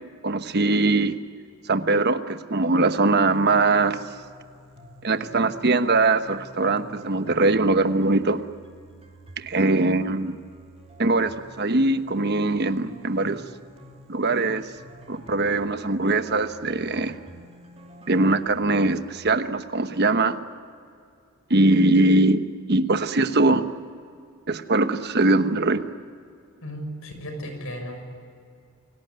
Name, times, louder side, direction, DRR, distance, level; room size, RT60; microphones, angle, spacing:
voice 1, 0.2-1.2 1.7-4.0 5.0-8.4 9.4-10.4 11.0-13.4 14.1-14.7 15.1-17.2 18.1-20.4 21.5-23.7 24.5-25.8, right 2 dB, 50° right, 9 dB, 1.1 m, -21 dB
sound 1, 3.3-19.3, equal, 30° right, 2.4 m, -49 dB
voice 2, 26.6-28.0, equal, 70° left, 5 dB, 6.3 m, -35 dB
28.5 x 18.0 x 9.5 m, 2.3 s
head